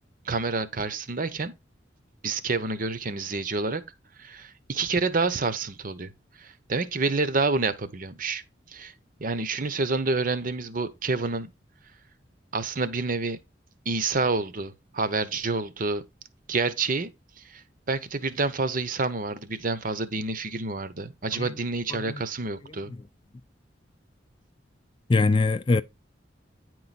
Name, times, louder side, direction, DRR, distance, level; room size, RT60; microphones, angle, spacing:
voice 1, 0.2-1.5 2.2-3.8 4.2-6.1 6.4-8.4 8.7-8.9 9.2-11.5 12.5-13.4 13.8-16.0 16.5-17.1 17.4-17.6 17.9-22.9, right 3 dB, 50° right, 0.9 m, -28 dB
voice 2, 25.1-25.8, left 3 dB, 25° left, 0.4 m, -21 dB
9.6 x 4.7 x 4.1 m
head